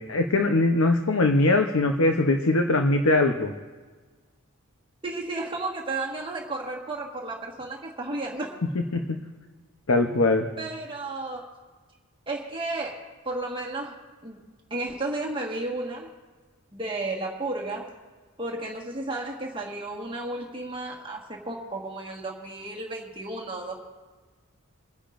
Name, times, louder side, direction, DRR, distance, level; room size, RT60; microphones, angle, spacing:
voice 1, 0.0-3.5 8.9-9.2 9.9-10.5, left 2 dB, 80° left, 4 dB, 0.8 m, -21 dB
voice 2, 5.0-8.6 10.6-11.5 12.3-14.4 14.7-16.1 16.7-17.9 18.4-23.8, right 2 dB, 25° right, -2 dB, 1.5 m, -33 dB
28.5 x 10.0 x 2.6 m, 1.4 s
head